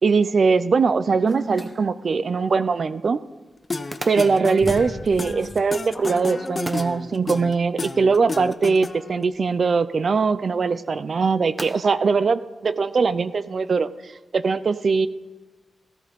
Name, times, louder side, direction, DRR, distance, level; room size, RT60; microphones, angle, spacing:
voice 1, 0.0-3.2 4.1-13.9 14.3-15.1, right 4 dB, 50° right, 14 dB, 0.5 m, -21 dB
sound 1, 1.3-1.7 3.9-4.0 4.6-7.1, equal, 5° left, 3.1 m, -36 dB
sound 2, 1.7-13.4, right 1 dB, 20° right, 0.9 m, -44 dB
sound 3, 3.7-9.2, left 3 dB, 30° left, 0.6 m, -31 dB
17.5 x 16.0 x 3.6 m, 1.2 s
wide cardioid pair, 150°, 0 cm